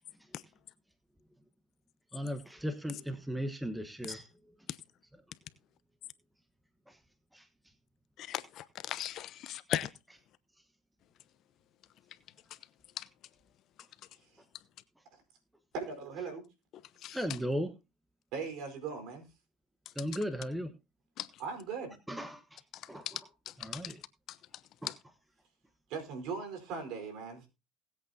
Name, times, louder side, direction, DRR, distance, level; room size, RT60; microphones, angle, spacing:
voice 1, 2.1-4.3 5.1-5.2 6.9-7.0 7.3-7.5 17.1-17.7 19.9-20.7 22.1-22.6 22.9-23.3 23.6-24.0 24.8-24.9, equal, 5° right, 1.3 m, -37 dB
voice 2, 8.3-9.9 13.0-13.1 17.0-17.2 21.2-21.3 23.1-23.2 23.7-23.9, left 12 dB, 55° left, 0.8 m, -37 dB
voice 3, 15.7-16.5 18.3-19.2 21.4-21.9 25.9-27.5, right 5 dB, 65° right, 4.4 m, -39 dB
19.5 x 8.3 x 2.8 m
supercardioid pair, 95°, 0 cm